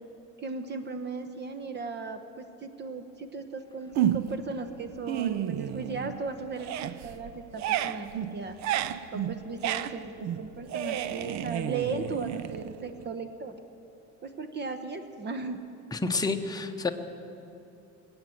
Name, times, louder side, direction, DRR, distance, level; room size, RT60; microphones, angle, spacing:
voice 1, 0.4-8.6 9.1-13.6 14.2-15.6, right 4 dB, 35° right, 9 dB, 1.0 m, -37 dB
sound 1, 4.0-4.5 4.9-6.3 6.5-13.1, right 11 dB, 65° right, 0.6 m, -31 dB
voice 2, 15.9-16.9, left 3 dB, 10° left, 4 dB, 0.9 m, -29 dB
21.0 x 8.8 x 7.8 m, 2.7 s
cardioid pair, 120°, 30 cm